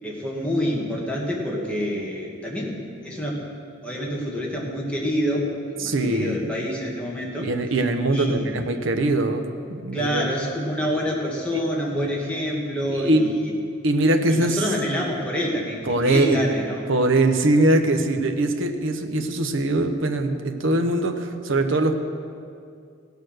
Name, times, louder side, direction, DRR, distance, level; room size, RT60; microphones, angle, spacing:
voice 1, 0.0-3.4 3.8-7.5 8.1-8.5 9.9-13.5 14.3-16.8, equal, 5° left, -4 dB, 1.6 m, -27 dB
voice 2, 5.8-6.5 7.4-10.2 11.5-11.6 12.8-13.3 13.8-14.6 15.9-16.5 16.9-22.0, right 2 dB, 70° right, 6 dB, 0.9 m, -22 dB
16.0 x 6.6 x 6.5 m, 2.3 s
head